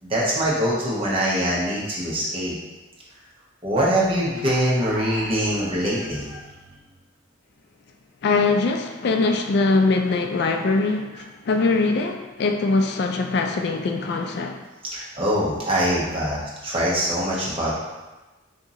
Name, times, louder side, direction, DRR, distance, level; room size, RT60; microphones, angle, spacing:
voice 1, 0.0-2.5 3.6-6.4 10.6-10.7 14.9-17.7, equal, 30° right, -6 dB, 0.9 m, -23 dB
voice 2, 8.2-14.6, left 3 dB, 55° left, 5 dB, 0.3 m, -22 dB
3.6 x 2.7 x 4.0 m, 1.1 s
head